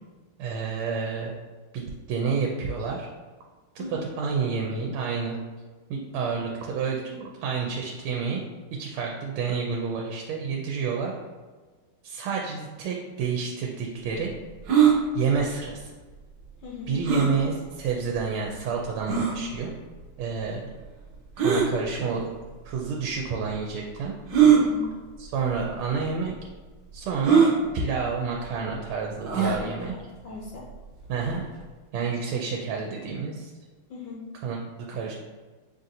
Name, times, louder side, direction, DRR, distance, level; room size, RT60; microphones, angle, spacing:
voice 1, 0.4-1.3 1.7-3.1 3.7-5.4 5.9-8.4 8.8-11.1 12.0-14.3 15.1-15.9 16.9-19.7 20.2-20.7 21.4-22.2 22.6-24.1 25.2-26.3 26.9-27.5 27.7-29.9 31.1-31.5 31.9-33.5 34.4-34.6 34.9-35.1, right 5 dB, 85° right, -1 dB, 1.4 m, -29 dB
sound 1, 14.7-15.0 17.0-17.3 18.1-18.2 19.1-19.3 21.4-21.7 22.7-22.8 24.3-24.6 25.5-25.7 26.0-26.1 27.2-27.5 29.2-29.6, right 7 dB, 65° right, 1.0 m, -19 dB
voice 2, 16.6-16.9 24.5-24.8 29.4-30.7 33.9-34.2, left 4 dB, 70° left, -2 dB, 1.2 m, -38 dB
5.8 x 2.5 x 2.7 m, 1.3 s
omnidirectional pair, 2.3 m